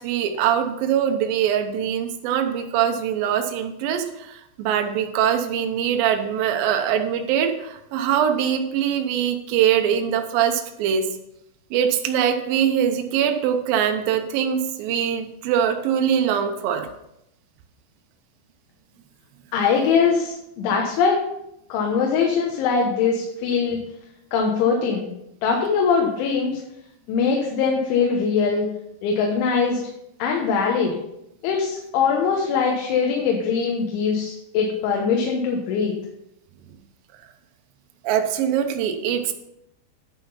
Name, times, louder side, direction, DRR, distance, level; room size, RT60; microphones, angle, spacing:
voice 1, 0.0-11.0 11.7-16.9 38.0-39.3, right 9 dB, 90° right, 5 dB, 2.0 m, -22 dB
voice 2, 19.5-21.2 21.7-23.8 24.3-25.1 25.4-26.6 27.1-28.7 29.0-29.8 30.2-31.0 31.4-35.9, left 5 dB, 80° left, 1 dB, 3.5 m, -22 dB
10.5 x 5.8 x 5.5 m, 0.81 s
omnidirectional pair, 5.4 m